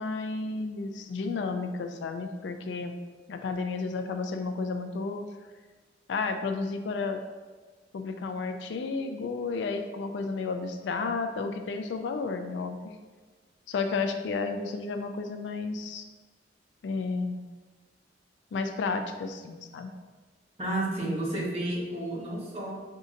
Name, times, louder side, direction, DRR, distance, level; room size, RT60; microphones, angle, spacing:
voice 1, 0.0-2.9 3.3-5.2 6.1-7.2 7.9-12.8 13.7-16.0 16.8-17.4 18.5-19.9, left 4 dB, 70° left, 7 dB, 0.3 m, -32 dB
voice 2, 20.6-22.8, right 1 dB, 35° right, -7 dB, 1.2 m, -31 dB
5.9 x 2.7 x 2.5 m, 1.3 s
head